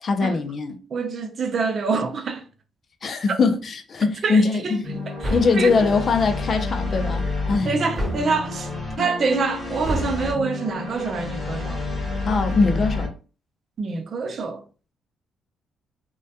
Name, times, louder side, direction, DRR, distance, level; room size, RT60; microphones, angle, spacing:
voice 1, 0.0-0.8 3.0-4.9 5.3-7.2 7.5-7.7 12.3-13.1, left 4 dB, 45° left, 0.4 m, -21 dB
voice 2, 0.9-2.4 4.2-5.9 7.6-8.7 9.0-11.8 13.8-14.6, right 4 dB, 50° right, 0.4 m, -26 dB
sound 1, 4.8-13.1, left 3 dB, 20° left, 1.0 m, -29 dB
sound 2, 5.2-5.7 7.9-8.4 9.8-10.2, right 1 dB, 15° right, 1.0 m, -28 dB
2.2 x 2.1 x 2.7 m
cardioid pair, 90°, 0 cm